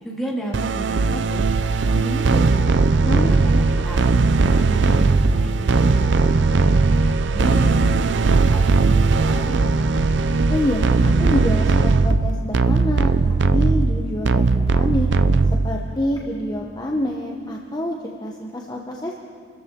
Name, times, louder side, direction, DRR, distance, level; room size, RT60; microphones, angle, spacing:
voice 1, 0.0-2.4 3.0-4.1 4.4-6.4 6.9-9.6, right 1 dB, ahead, -5 dB, 2.4 m, -33 dB
sound 1, 0.5-16.0, right 3 dB, 65° right, 0.5 m, -18 dB
voice 2, 10.5-14.5 14.7-15.1 15.6-19.1, left 1 dB, 20° left, 0 dB, 0.9 m, -26 dB
27.0 x 14.0 x 3.7 m, 2.2 s
head